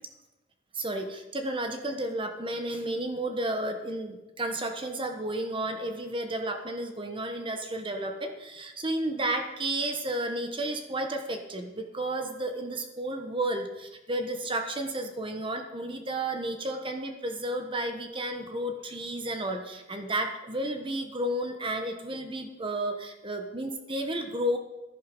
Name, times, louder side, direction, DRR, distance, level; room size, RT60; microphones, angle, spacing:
voice 1, 0.7-24.6, right 1 dB, 25° right, 5 dB, 1.2 m, -32 dB
13.0 x 11.5 x 5.4 m, 1.0 s
head